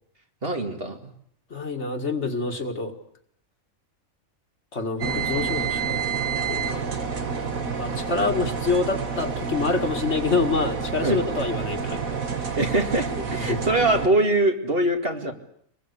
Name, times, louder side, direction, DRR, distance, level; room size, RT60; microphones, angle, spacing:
voice 1, 0.4-1.0 11.0-11.2 12.6-15.3, right 2 dB, 45° right, 4 dB, 2.5 m, -23 dB
voice 2, 1.5-2.9 4.7-6.0 6.5-12.6 13.5-13.6, left 3 dB, 55° left, 4 dB, 2.4 m, -27 dB
sound 1, 5.0-14.1, right 6 dB, 80° right, 2.2 m, -29 dB
25.5 x 21.5 x 8.3 m, 0.66 s
omnidirectional pair, 1.4 m